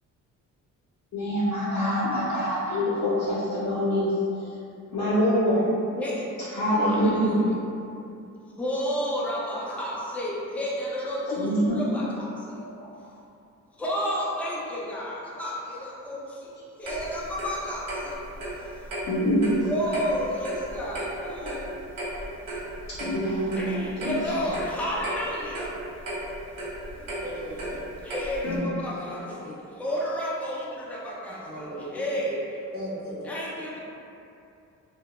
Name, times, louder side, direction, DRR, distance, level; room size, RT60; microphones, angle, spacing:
voice 1, 1.1-4.5 4.9-5.7 6.5-7.4 11.3-11.8 19.0-19.7 21.4-21.5 22.9-24.1 28.4-28.6 31.8-31.9, equal, 55° left, -10 dB, 0.6 m, -25 dB
voice 2, 5.9-6.3 6.9-7.5 8.6-12.6 13.8-18.1 19.6-21.6 23.6-25.7 26.9-27.2 28.0-29.3 29.8-32.4 33.2-33.8, equal, 5° left, -6 dB, 0.4 m, -31 dB
Clock, 16.8-28.6, right 1 dB, 80° right, 0.8 m, -35 dB
voice 3, 27.2-27.8 28.8-29.6 31.4-32.2 32.7-33.2, equal, 25° right, -7 dB, 0.8 m, -38 dB
2.2 x 2.1 x 2.8 m, 2.7 s
cardioid pair, 95°, 33 cm